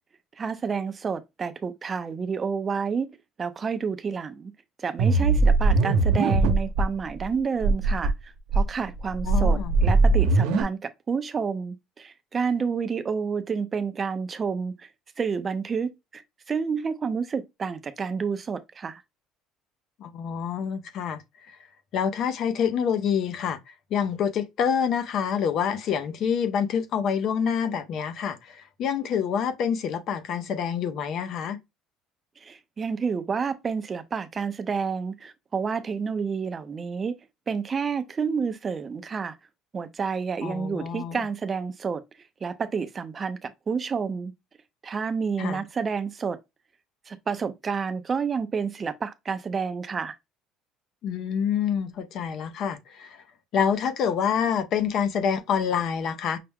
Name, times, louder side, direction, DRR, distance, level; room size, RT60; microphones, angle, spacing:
voice 1, 0.4-3.1 3.4-4.5 4.8-14.9 15.2-19.0 32.4-37.2 37.5-39.3 39.7-42.0 42.4-44.3 44.8-46.4 47.1-50.1, right 5 dB, 25° right, 0.5 m, -29 dB
sound 1, 5.0-6.9 7.2-7.3 7.6-8.1 8.5-10.6, right 3 dB, 90° right, 0.8 m, -20 dB
voice 2, 9.3-9.7 20.0-21.2 21.5-21.6 21.9-31.6 40.4-41.2 45.4-45.6 51.0-53.2 53.5-56.4, left 7 dB, 50° left, 0.6 m, -27 dB
5.7 x 2.1 x 3.5 m
cardioid pair, 140°, 0 cm